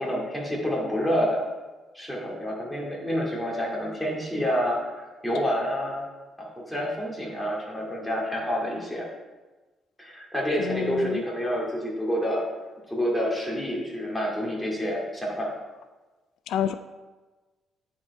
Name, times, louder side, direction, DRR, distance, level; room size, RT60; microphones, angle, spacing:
voice 1, 0.0-1.4 1.9-6.0 6.7-9.1 10.0-12.4 12.9-15.5, equal, 5° left, -3 dB, 2.3 m, -28 dB
voice 2, 10.6-11.2 16.5-16.7, left 10 dB, 80° left, 11 dB, 0.3 m, -29 dB
9.5 x 4.6 x 4.2 m, 1.2 s
cardioid pair, 90°, 0 cm